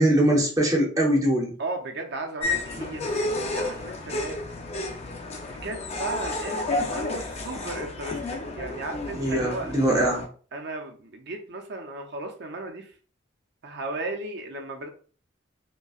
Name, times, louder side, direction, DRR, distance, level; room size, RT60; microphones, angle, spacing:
voice 1, 0.0-1.5 9.2-10.2, right 1 dB, 15° right, -1 dB, 0.7 m, -22 dB
voice 2, 1.6-4.3 5.6-10.1 10.5-12.9 13.6-14.9, right 2 dB, 55° right, 3 dB, 0.6 m, -35 dB
sound 1, 2.4-10.3, left 2 dB, 30° left, 0.5 m, -31 dB
5.3 x 2.1 x 2.4 m, 0.41 s
head